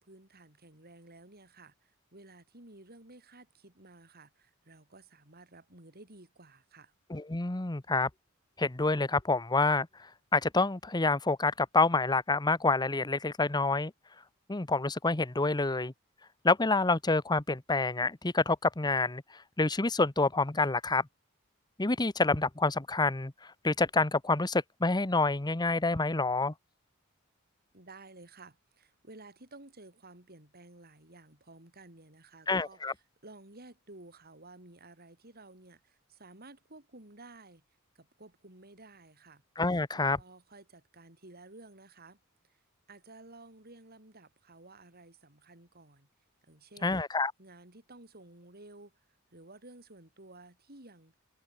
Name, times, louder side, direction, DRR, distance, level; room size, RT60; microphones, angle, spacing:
voice 1, 0.0-6.9 27.7-32.8 33.2-37.6 37.9-39.4 39.9-42.2 42.9-46.1 46.4-47.0 47.4-49.0 49.3-51.1, right 2 dB, 45° right, 6.8 m, -54 dB
voice 2, 7.1-8.1 8.6-9.9 10.3-13.9 14.5-15.9 16.4-21.1 21.8-23.3 23.6-26.5 32.5-32.9 39.6-40.2 46.8-47.3, left 3 dB, 20° left, 1.0 m, -27 dB
head